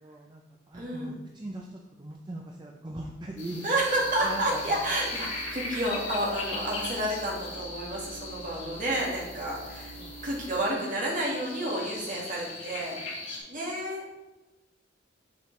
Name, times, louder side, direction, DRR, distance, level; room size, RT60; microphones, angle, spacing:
voice 1, 0.0-0.4 0.7-3.9 4.2-4.9 10.0-10.3, right 1 dB, 25° right, 0 dB, 0.5 m, -40 dB
voice 2, 0.7-1.1 3.6-9.9 10.2-14.1, right 1 dB, 40° right, -3 dB, 1.8 m, -30 dB
sound 1, 3.4-13.4, left 2 dB, 75° left, 2.0 m, -39 dB
sound 2, 3.7-10.4, equal, 60° left, 1.5 m, -48 dB
6.6 x 6.5 x 3.2 m, 1.1 s
head